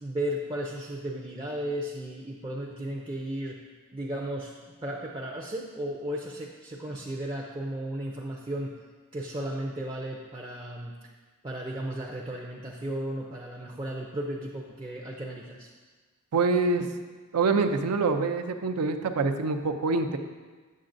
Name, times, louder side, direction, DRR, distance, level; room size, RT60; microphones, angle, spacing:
voice 1, 0.0-3.6 3.9-4.5 4.8-8.7 9.1-10.9 11.4-15.7, right 1 dB, 20° right, -2 dB, 0.5 m, -34 dB
voice 2, 16.3-16.9 17.3-20.2, right 4 dB, 85° right, 7 dB, 0.5 m, -25 dB
7.5 x 7.4 x 2.6 m, 1.4 s
head